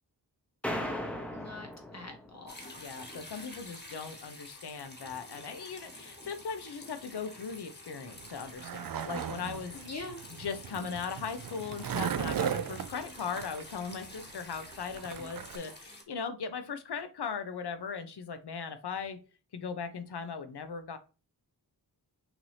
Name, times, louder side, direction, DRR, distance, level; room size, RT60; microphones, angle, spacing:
sound 1, 0.6-2.6, left 1 dB, 5° left, 0.8 m, -37 dB
voice 1, 1.3-1.7 1.9-2.5 9.9-10.2, left 3 dB, 40° left, 4 dB, 0.7 m, -43 dB
sound 2, 2.5-16.0, left 1 dB, 25° left, 1.3 m, -49 dB
voice 2, 2.8-19.2 19.5-21.0, left 6 dB, 70° left, 10 dB, 0.8 m, -39 dB
Skateboard, 8.1-15.6, right 8 dB, 60° right, 0.5 m, -37 dB
5.9 x 2.7 x 3.2 m, 0.33 s
wide cardioid pair, 85°, 41 cm